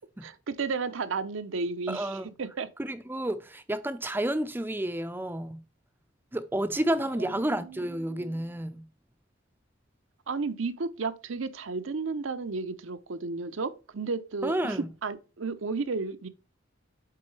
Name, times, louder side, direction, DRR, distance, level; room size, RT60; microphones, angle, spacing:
voice 1, 0.2-2.7 7.2-7.3 7.6-7.8 8.1-8.4 10.3-16.3, right 4 dB, 75° right, 0.7 m, -33 dB
voice 2, 1.9-2.3 2.8-5.6 6.3-8.8 14.4-14.9, right 1 dB, 10° right, 0.5 m, -30 dB
8.4 x 3.8 x 3.2 m
head